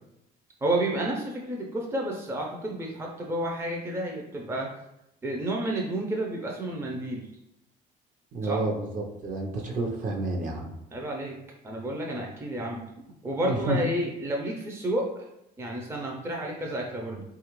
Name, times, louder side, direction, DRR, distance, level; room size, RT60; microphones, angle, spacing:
voice 1, 0.6-4.7 5.2-7.3 8.4-8.6 10.9-11.4 11.6-12.8 13.2-15.3 15.6-17.2, right 1 dB, 15° right, -1 dB, 0.5 m, -30 dB
voice 2, 8.3-10.7 13.4-13.8, right 2 dB, 50° right, 0 dB, 0.7 m, -30 dB
3.2 x 2.4 x 3.0 m, 0.82 s
cardioid pair, 110°, 17 cm